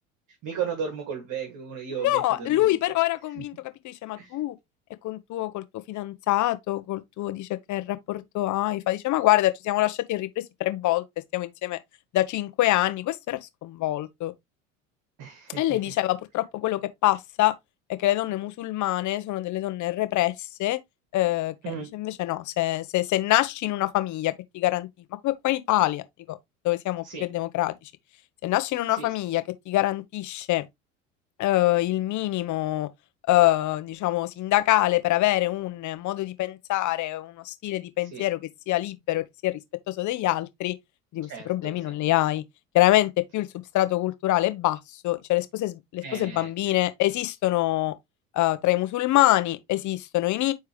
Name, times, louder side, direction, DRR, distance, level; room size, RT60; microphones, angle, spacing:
voice 1, 0.4-2.7 3.3-3.4 4.2-4.4 15.2-15.8 21.6-21.9 27.0-27.3 28.9-29.1 38.1-38.3 41.3-41.8 46.0-46.8, right 7 dB, 50° right, 2.7 m, -35 dB
voice 2, 2.0-3.5 3.8-4.5 5.0-11.0 11.3-11.8 12.1-14.3 15.6-17.5 17.9-20.8 21.1-24.9 25.2-26.0 26.3-26.4 26.6-27.7 28.4-30.7 31.4-32.9 33.3-38.4 38.7-39.6 39.9-40.7 41.1-42.4 42.7-43.5 43.7-44.8 45.0-47.9 48.3-50.5, left 16 dB, 45° left, 1.3 m, -25 dB
9.5 x 3.7 x 3.3 m
hypercardioid pair, 70°, 40 cm